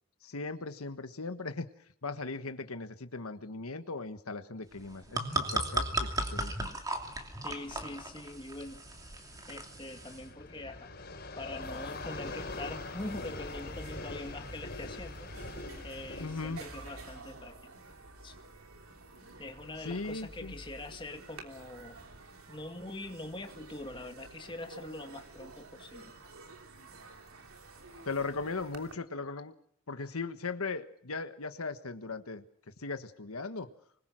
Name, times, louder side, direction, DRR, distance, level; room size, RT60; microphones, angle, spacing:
voice 1, 0.2-1.7 2.0-6.7 16.2-16.6 19.8-20.5 28.0-29.5 29.9-32.4 32.8-33.7, left 3 dB, 90° left, 9 dB, 1.5 m, -38 dB
sound 1, 4.8-10.2, right 2 dB, 15° right, 2.8 m, -36 dB
sound 2, 6.6-17.2, left 2 dB, 50° left, 4.1 m, -44 dB
voice 2, 7.4-8.8 9.5-10.9 11.4-15.3 15.8-17.7 18.2-18.3 19.4-22.0 22.5-26.2, left 2 dB, 25° left, 5 dB, 2.2 m, -43 dB
sound 3, 11.2-11.3 11.5-28.9, right 3 dB, 85° right, 3.2 m, -51 dB
25.0 x 21.0 x 6.3 m, 0.64 s
head